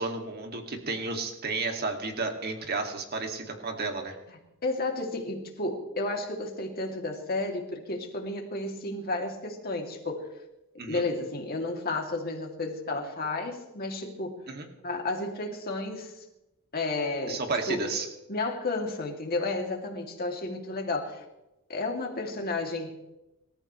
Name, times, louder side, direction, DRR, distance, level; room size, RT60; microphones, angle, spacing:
voice 1, 0.0-4.2 10.8-11.0 14.5-14.7 17.3-18.1, right 3 dB, 45° right, 3 dB, 2.3 m, -32 dB
voice 2, 4.6-10.3 10.7-14.4 14.8-16.2 16.7-17.4 17.7-17.9 18.3-21.2 21.7-23.0, left 2 dB, 45° left, 1 dB, 2.7 m, -32 dB
27.0 x 14.0 x 3.2 m, 0.94 s
head